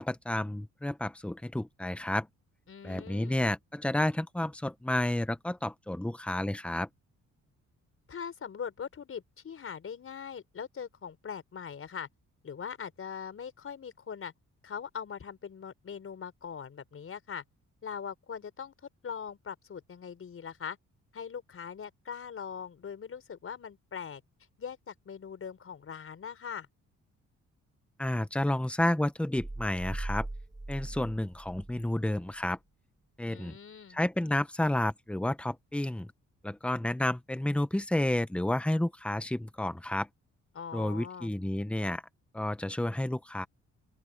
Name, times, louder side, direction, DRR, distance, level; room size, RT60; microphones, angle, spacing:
voice 1, 0.0-2.3 2.8-6.9 28.0-30.3 30.7-32.6 33.2-33.6 33.9-36.1 36.4-40.1 40.7-42.0 42.3-43.5, left 1 dB, 5° left, 1.2 m, -31 dB
voice 2, 2.7-3.4 8.1-12.1 12.4-14.3 14.6-17.4 17.8-18.7 19.0-20.8 21.1-24.2 24.6-26.7 33.3-34.0 40.5-41.3, left 7 dB, 45° left, 4.8 m, -41 dB
sound 1, 29.4-31.9 32.3-32.4, right 2 dB, 15° right, 6.4 m, -39 dB
open air
cardioid pair, 110°, 30 cm